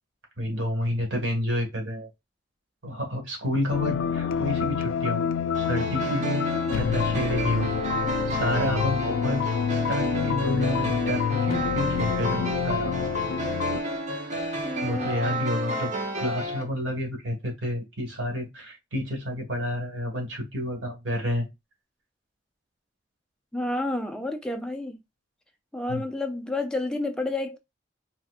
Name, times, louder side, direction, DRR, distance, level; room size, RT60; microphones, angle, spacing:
voice 1, 0.4-2.1 2.8-7.7 8.3-9.4 9.7-13.0 14.8-15.9 16.2-21.5 25.9-26.0, left 1 dB, 85° right, 1.7 m, -29 dB
sound 1, 3.7-13.8, left 7 dB, 90° left, 0.3 m, -27 dB
sound 2, 5.5-16.6, right 1 dB, 40° right, 0.8 m, -31 dB
voice 2, 14.6-15.2 23.5-25.0 25.7-27.6, left 2 dB, 5° left, 0.5 m, -30 dB
4.1 x 2.8 x 2.4 m
head